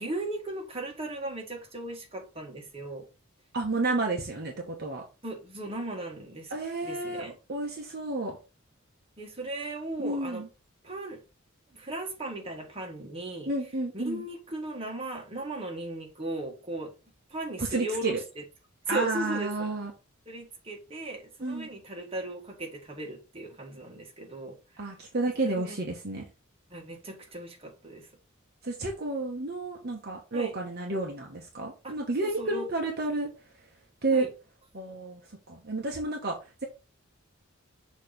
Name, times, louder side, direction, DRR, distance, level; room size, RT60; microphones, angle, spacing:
voice 1, 0.0-3.1 5.2-6.5 6.8-7.4 9.2-10.4 10.8-11.2 11.7-13.5 13.9-16.9 17.3-18.4 18.9-19.7 20.3-24.6 25.4-25.8 26.7-28.1 30.3-30.5 31.8-32.7 34.1-34.3, right 2 dB, 30° right, 1.7 m, -37 dB
voice 2, 3.5-5.0 6.5-7.2 7.5-8.4 10.0-10.5 13.5-14.2 17.6-18.2 18.9-19.9 21.4-21.7 24.8-26.2 28.6-33.3 34.0-34.3 34.7-35.2 35.5-36.6, right 2 dB, 50° right, 1.1 m, -31 dB
6.6 x 3.1 x 5.0 m
head